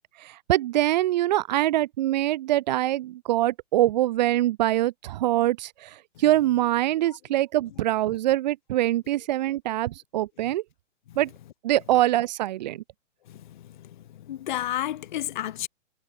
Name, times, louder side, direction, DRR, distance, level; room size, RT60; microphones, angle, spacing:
voice 1, 0.2-10.6 11.2-11.3 11.6-12.8, right 14 dB, 35° right, 1.3 m, -24 dB
voice 2, 13.3-15.7, left 13 dB, 40° left, 0.6 m, -32 dB
hypercardioid pair, 155°, 38 cm